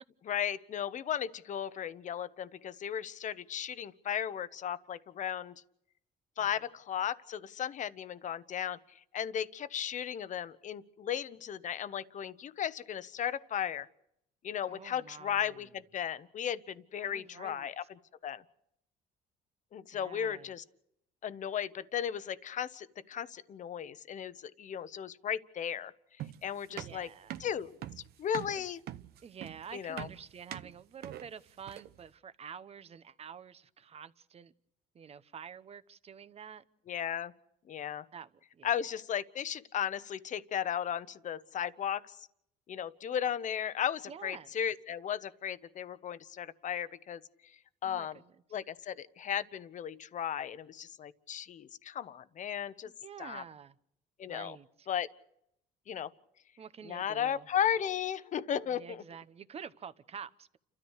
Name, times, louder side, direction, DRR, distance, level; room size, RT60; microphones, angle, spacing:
voice 1, 0.2-5.5 6.4-8.8 9.1-13.9 14.4-17.8 18.2-18.4 19.7-20.6 21.2-25.9 26.4-27.1 27.4-27.8 28.2-28.8 29.7-30.1 36.9-37.3 37.7-38.0 38.6-42.2 42.7-47.2 47.8-48.2 48.5-52.9 53.2-53.4 54.2-54.6 54.9-55.1 55.9-56.1 56.8-59.0, left 9 dB, 50° left, 1.0 m, -35 dB
voice 2, 14.7-15.6 17.0-17.7 19.9-20.5 26.7-27.4 28.5-28.6 29.2-34.5 34.9-36.6 38.1-38.7 44.1-44.5 47.8-48.3 53.0-53.8 54.3-54.9 56.6-57.5 58.7-60.6, right 7 dB, 35° right, 1.0 m, -48 dB
sound 1, 26.2-32.0, right 12 dB, 70° right, 0.9 m, -44 dB
30.0 x 13.5 x 6.5 m
cardioid pair, 110°, 17 cm